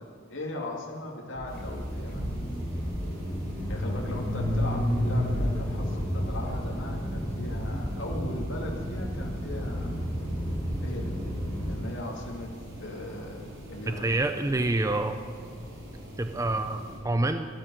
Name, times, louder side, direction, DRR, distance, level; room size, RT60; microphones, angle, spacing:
voice 1, 0.0-2.3 3.7-9.9 10.8-11.2 11.6-12.5 12.8-14.1, left 1 dB, 70° left, -1 dB, 2.3 m, -38 dB
sound 1, 1.4-11.8, equal, 10° left, 3.4 m, -31 dB
sound 2, 1.5-17.0, equal, 75° right, 4.8 m, -44 dB
voice 2, 13.9-15.1 16.2-17.5, right 2 dB, 15° right, 8 dB, 0.5 m, -27 dB
13.0 x 12.0 x 9.2 m, 2.2 s
head